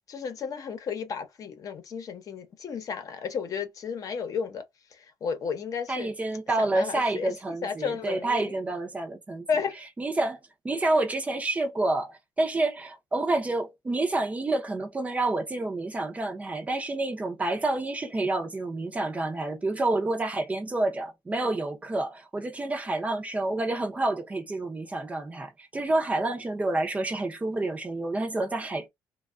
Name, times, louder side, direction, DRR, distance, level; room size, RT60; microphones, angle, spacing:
voice 1, 0.1-4.6 4.9-6.1 6.6-8.5 9.5-9.7, left 6 dB, 45° left, 0.8 m, -33 dB
voice 2, 5.9-9.5 10.0-10.4 10.6-28.9, right 2 dB, 15° right, 0.6 m, -28 dB
3.3 x 2.3 x 2.4 m
cardioid pair, 135°, 8 cm